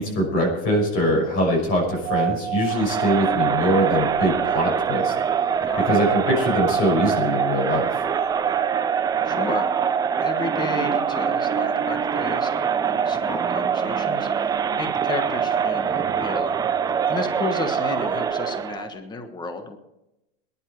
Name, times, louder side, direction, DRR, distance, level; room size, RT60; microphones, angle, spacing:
voice 1, 0.0-5.1 5.8-7.9, equal, 40° left, -1 dB, 6.1 m, -22 dB
sound 1, 1.8-18.9, right 9 dB, 30° right, 1.3 m, -30 dB
Crowd, 2.7-18.8, right 7 dB, 10° right, 0.4 m, -25 dB
voice 2, 5.6-6.0 9.2-9.7 10.2-16.5 17.1-19.8, left 3 dB, 15° left, 8 dB, 1.2 m, -32 dB
21.5 x 11.0 x 4.6 m, 0.91 s
supercardioid pair, 145°, 32 cm